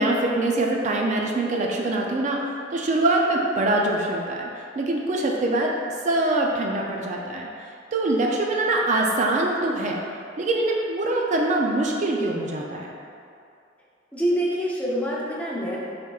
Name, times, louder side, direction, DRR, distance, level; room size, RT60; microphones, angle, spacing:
voice 1, 0.0-2.4 2.7-4.5 4.8-5.7 6.0-7.5 7.9-10.0 10.4-12.9, right 2 dB, 40° right, 0 dB, 0.4 m, -23 dB
voice 2, 14.1-15.8, equal, 10° left, -6 dB, 0.6 m, -25 dB
5.4 x 3.6 x 2.3 m, 2.4 s
head